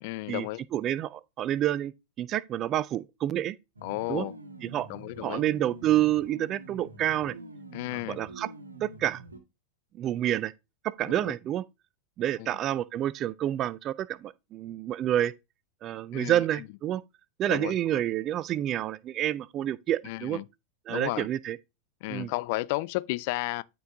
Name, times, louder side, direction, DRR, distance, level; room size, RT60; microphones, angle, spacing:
voice 1, 0.0-0.6 3.8-4.3 4.9-5.4 7.7-8.2 11.1-11.3 12.4-12.5 16.1-16.4 17.5-17.8 20.0-20.4 20.9-21.3 22.0-23.6, left 21 dB, 50° left, 0.4 m, -33 dB
voice 2, 0.7-1.9 2.2-3.6 4.1-4.3 4.6-4.9 5.2-7.3 8.1-8.5 8.8-9.2 9.9-10.5 10.8-11.7 12.2-15.3 15.8-17.0 17.4-20.4 20.9-21.6 22.1-22.3, right 12 dB, 30° right, 0.4 m, -28 dB
sound 1, 3.8-9.4, right 3 dB, 75° right, 1.5 m, -45 dB
12.5 x 4.6 x 2.7 m
figure-of-eight pair, 90°, 0 cm